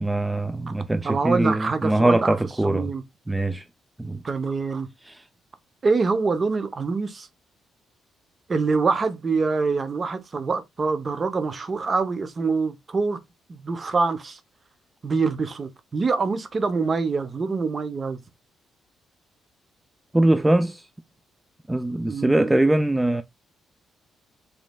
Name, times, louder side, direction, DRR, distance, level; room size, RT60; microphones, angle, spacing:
voice 1, 0.0-2.9 3.3-3.6 4.0-4.2 5.1-5.2 20.1-20.9 21.7-23.2, right 1 dB, 10° right, 0.3 m, -22 dB
voice 2, 1.0-2.4 2.6-3.0 4.2-4.9 5.8-7.3 8.5-13.2 13.5-14.4 15.0-18.2 22.1-22.6, right 4 dB, 35° right, 0.7 m, -25 dB
5.2 x 3.2 x 2.2 m
cardioid pair, 90°, 0 cm